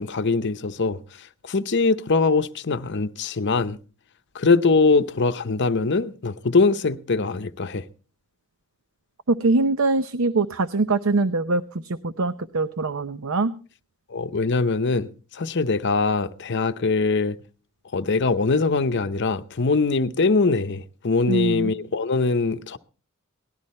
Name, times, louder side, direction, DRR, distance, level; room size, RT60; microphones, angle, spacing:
voice 1, 0.0-3.8 4.3-7.8 14.1-17.4 17.9-22.8, left 3 dB, 55° left, 0.7 m, -22 dB
voice 2, 9.3-13.5 21.3-21.7, right 3 dB, 70° right, 0.7 m, -23 dB
19.0 x 12.5 x 4.3 m
head